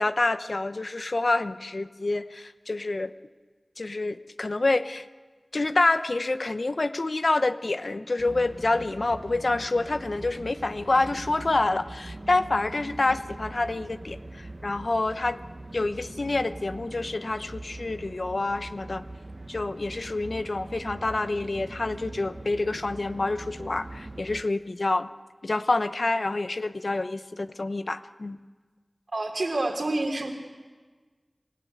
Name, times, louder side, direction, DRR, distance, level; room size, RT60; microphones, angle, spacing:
voice 1, 0.0-3.1 3.8-5.0 5.5-15.4 15.7-19.0 19.5-25.1 25.4-28.4, left 2 dB, 65° left, 11 dB, 0.9 m, -27 dB
sound 1, 8.2-24.4, right 2 dB, 40° right, 1.3 m, -42 dB
voice 2, 29.1-30.3, right 2 dB, 75° right, 2 dB, 3.5 m, -28 dB
26.0 x 16.0 x 9.4 m, 1.4 s
wide cardioid pair, 50°, 0 cm